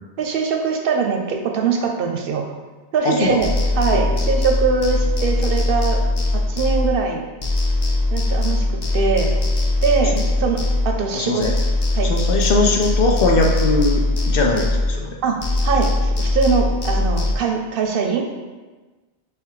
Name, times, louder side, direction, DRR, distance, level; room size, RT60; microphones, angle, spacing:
voice 1, 0.2-2.5 2.9-6.0 6.3-7.2 8.1-8.7 8.9-9.3 9.8-11.4 11.9-12.1 15.2-15.4 15.6-18.4, right 5 dB, 65° right, 3 dB, 0.7 m, -22 dB
voice 2, 3.0-3.4 3.9-4.0 10.2-10.3 11.1-11.5 12.0-15.1, left 3 dB, 65° left, 1 dB, 0.8 m, -20 dB
sound 1, 3.4-7.2 7.4-11.1 11.4-15.1 15.4-17.3, left 2 dB, 40° left, 0.4 m, -21 dB
3.4 x 3.3 x 4.7 m, 1.3 s
omnidirectional pair, 1.0 m